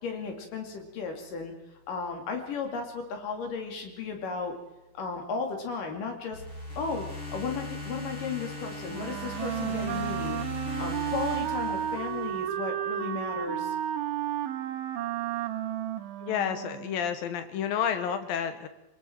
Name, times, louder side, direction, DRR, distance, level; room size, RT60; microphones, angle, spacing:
voice 1, 0.0-1.5 1.9-4.5 4.9-6.4 6.8-7.1 7.3-10.4 10.8-13.8, left 5 dB, 50° left, 4 dB, 3.9 m, -34 dB
sound 1, 6.3-12.5, left 2 dB, 30° left, 8.5 m, -38 dB
Wind instrument woodwind instrument, 8.9-17.2, right 11 dB, 90° right, 3.6 m, -33 dB
voice 2, 16.2-18.7, left 8 dB, 65° left, 9 dB, 2.6 m, -30 dB
28.0 x 20.5 x 4.6 m, 0.97 s
omnidirectional pair, 5.2 m